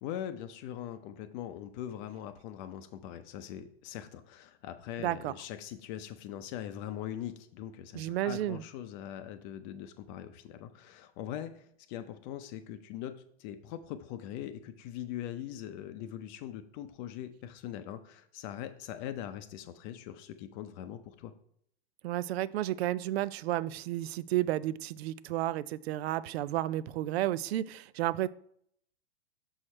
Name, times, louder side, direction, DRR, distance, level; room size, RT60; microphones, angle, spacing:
voice 1, 0.0-21.3, left 11 dB, 45° left, 8 dB, 0.6 m, -41 dB
voice 2, 5.0-5.3 7.9-8.6 22.0-28.3, right 14 dB, 65° right, 19 dB, 0.5 m, -32 dB
6.3 x 4.7 x 4.4 m, 0.68 s
hypercardioid pair, 115°, 33 cm